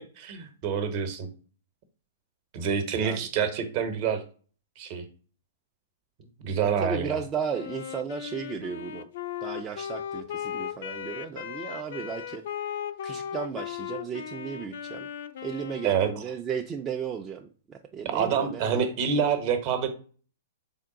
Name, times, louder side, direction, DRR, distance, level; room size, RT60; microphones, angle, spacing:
voice 1, 0.2-1.3 2.5-4.2 4.8-5.0 6.4-7.2 15.8-16.1 18.0-19.9, right 7 dB, 45° right, 7 dB, 0.8 m, -27 dB
voice 2, 2.9-3.3 6.6-9.1 9.4-12.4 13.0-15.1 15.4-18.9, right 7 dB, 20° right, 2 dB, 0.3 m, -35 dB
Wind instrument woodwind instrument, 7.5-16.4, left 9 dB, 65° left, 0.3 m, -37 dB
3.5 x 2.2 x 3.8 m, 0.40 s
hypercardioid pair, 120°, 0 cm